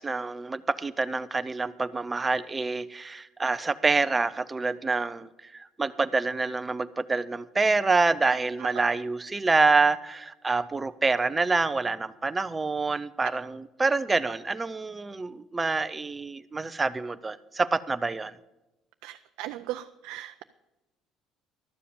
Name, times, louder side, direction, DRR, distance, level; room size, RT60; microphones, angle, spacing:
voice 1, 0.0-18.3, right 3 dB, 15° right, 13 dB, 0.5 m, -27 dB
voice 2, 19.0-20.4, right 15 dB, 85° right, 8 dB, 0.4 m, -38 dB
12.5 x 7.4 x 6.9 m, 0.99 s
cardioid pair, 155°, 0 cm